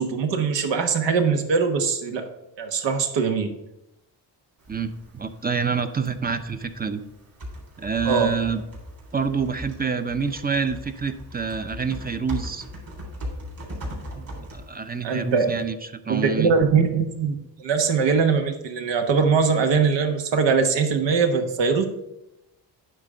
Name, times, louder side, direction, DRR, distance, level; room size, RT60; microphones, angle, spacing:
voice 1, 0.0-2.2 2.6-3.5 8.0-8.3 15.0-15.5 16.1-21.9, right 5 dB, 80° right, 5 dB, 1.3 m, -22 dB
Typing, 4.6-15.6, equal, 50° right, 3.4 m, -39 dB
voice 2, 4.7-7.0 7.8-8.6 9.1-12.6 14.1-15.8 16.1-16.5, right 5 dB, 20° right, 10 dB, 0.6 m, -27 dB
9.3 x 3.7 x 6.6 m, 0.90 s
cardioid pair, 85°, 43 cm